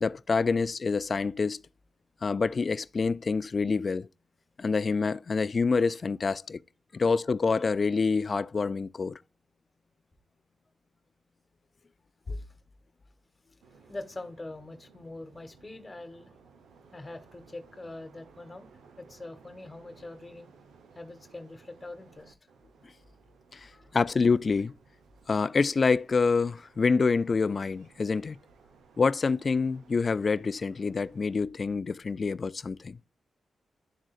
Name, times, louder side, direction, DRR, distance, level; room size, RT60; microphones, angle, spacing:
voice 1, 0.0-1.6 2.2-4.1 4.6-6.6 6.9-9.2 12.3-12.4 23.5-24.7 25.3-28.4 29.0-33.0, left 4 dB, 45° left, 0.3 m, -27 dB
sound 1, 13.6-31.4, right 5 dB, 90° right, 0.8 m, -58 dB
voice 2, 13.9-16.3 16.9-18.7 19.0-20.5 20.9-22.5 23.7-23.9, left 2 dB, 25° left, 1.4 m, -43 dB
11.0 x 3.7 x 2.4 m
cardioid pair, 65°, 0 cm